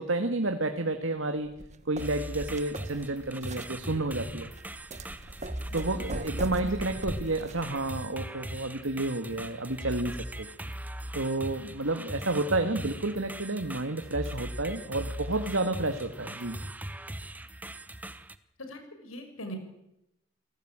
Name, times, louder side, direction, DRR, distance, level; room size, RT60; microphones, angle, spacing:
voice 1, 0.0-1.5 1.9-4.5 5.7-10.5 11.1-16.6, right 2 dB, 70° right, 6 dB, 2.0 m, -30 dB
sound 1, 1.5-8.1, right 1 dB, 35° right, 1.4 m, -41 dB
sound 2, 2.0-18.4, right 1 dB, 10° right, 1.0 m, -40 dB
voice 2, 18.6-19.6, equal, 85° left, 6 dB, 6.3 m, -41 dB
29.5 x 18.5 x 9.0 m, 0.88 s
head